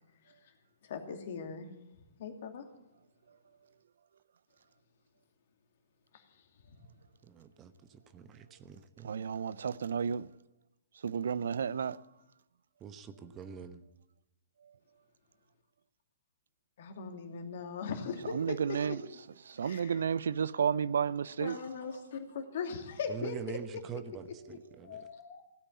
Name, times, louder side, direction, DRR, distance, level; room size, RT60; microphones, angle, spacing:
voice 1, 0.8-1.7 2.2-2.7 6.1-6.4 16.8-18.8 19.6-20.0 21.4-23.6 24.8-25.4, left 5 dB, 55° left, 2.6 m, -40 dB
voice 2, 7.2-9.1 12.8-13.8 23.1-25.1, right 8 dB, 25° right, 1.0 m, -45 dB
voice 3, 9.0-10.3 11.0-12.0 18.3-19.0 19.5-21.6, right 7 dB, 65° right, 0.5 m, -32 dB
16.5 x 8.9 x 8.5 m
figure-of-eight pair, 120°, 0 cm